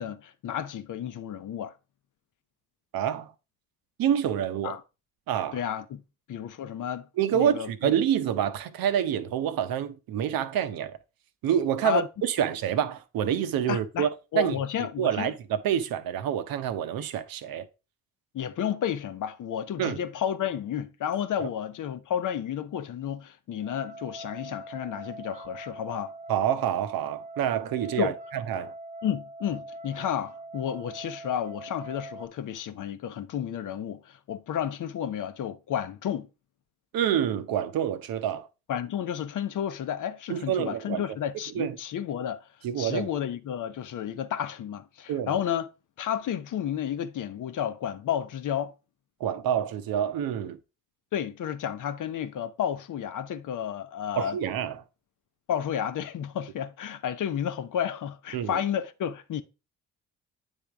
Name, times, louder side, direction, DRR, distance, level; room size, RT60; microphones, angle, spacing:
voice 1, 0.0-1.7 4.6-4.8 5.5-6.0 6.3-7.1 7.3-7.9 11.8-12.1 13.7-15.3 18.3-26.1 28.0-28.1 29.0-36.3 38.7-42.5 42.8-45.7 46.0-48.7 51.1-54.4 55.5-59.4, left 9 dB, 55° left, 0.8 m, -31 dB
voice 2, 2.9-3.3 4.0-4.8 5.3-5.6 7.2-11.0 11.4-14.5 15.0-17.7 19.8-20.0 21.4-21.5 26.3-28.7 36.9-38.5 40.3-41.0 41.5-41.8 42.6-43.1 45.1-45.3 49.2-50.6 54.2-54.8 58.3-58.6, right 9 dB, 65° right, 0.8 m, -27 dB
sound 1, 23.6-32.3, right 1 dB, 20° right, 0.7 m, -43 dB
8.9 x 3.6 x 3.4 m
hypercardioid pair, 50°, 38 cm